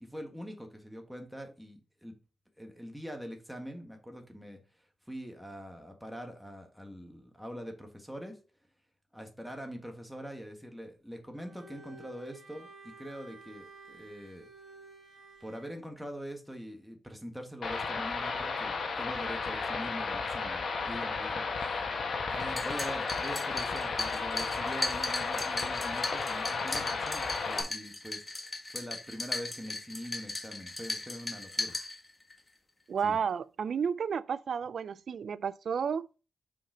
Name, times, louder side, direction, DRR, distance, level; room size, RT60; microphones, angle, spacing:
voice 1, 0.0-2.1 2.6-4.6 5.1-8.4 9.1-14.5 15.4-22.0 22.3-31.7 33.0-33.2, equal, ahead, 1.5 m, -43 dB
Bowed string instrument, 11.3-15.8, right 3 dB, 45° right, 1.8 m, -53 dB
sound 1, 17.6-27.6, left 4 dB, 60° left, 1.5 m, -33 dB
sound 2, 22.4-32.4, left 2 dB, 20° left, 1.4 m, -37 dB
voice 2, 32.9-36.1, right 7 dB, 65° right, 0.3 m, -32 dB
5.4 x 5.1 x 3.9 m
cardioid pair, 100°, 0 cm